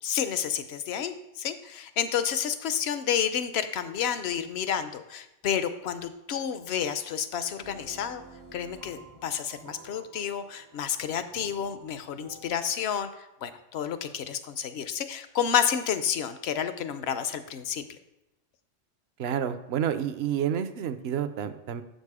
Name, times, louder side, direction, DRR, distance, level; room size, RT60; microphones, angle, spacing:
voice 1, 0.0-8.2 8.5-18.0, left 8 dB, 65° left, 11 dB, 0.8 m, -30 dB
sound 1, 7.6-13.1, right 3 dB, 30° right, 0.3 m, -51 dB
voice 2, 19.2-21.8, right 9 dB, 65° right, 11 dB, 0.8 m, -29 dB
7.2 x 6.6 x 4.8 m, 0.94 s
omnidirectional pair, 1.2 m